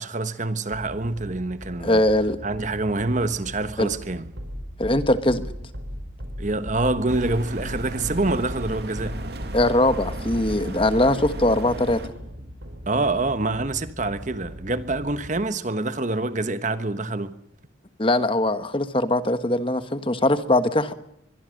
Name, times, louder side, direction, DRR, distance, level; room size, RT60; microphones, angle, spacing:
voice 1, 0.0-2.0 2.4-4.3 6.4-9.2 12.9-17.3, right 2 dB, 40° right, 1.2 m, -26 dB
sound 1, 0.7-15.4, equal, 70° right, 5.0 m, -37 dB
voice 2, 1.8-2.4 3.8-3.9 4.8-5.5 9.5-12.0 18.0-20.9, left 1 dB, 25° left, 1.3 m, -21 dB
sound 2, 7.1-12.1, right 1 dB, 55° right, 2.6 m, -36 dB
23.5 x 22.5 x 6.5 m
head